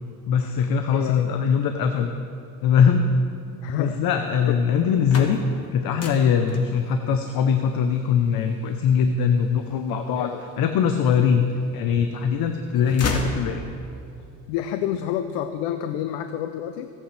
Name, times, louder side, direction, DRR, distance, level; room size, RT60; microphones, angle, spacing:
voice 1, 0.3-2.1 2.6-3.1 3.8-5.4 5.7-10.3 10.6-11.4 11.7-13.6, left 7 dB, 70° left, 6 dB, 1.0 m, -21 dB
voice 2, 0.9-1.3 3.6-4.2 10.2-10.4 14.5-16.9, left 10 dB, 85° left, 8 dB, 0.7 m, -29 dB
sound 1, 4.8-10.7 11.3-12.1 12.4-14.0, left 3 dB, 40° left, 1.9 m, -34 dB
26.0 x 8.8 x 3.4 m, 2.6 s
supercardioid pair, 80°, 37 cm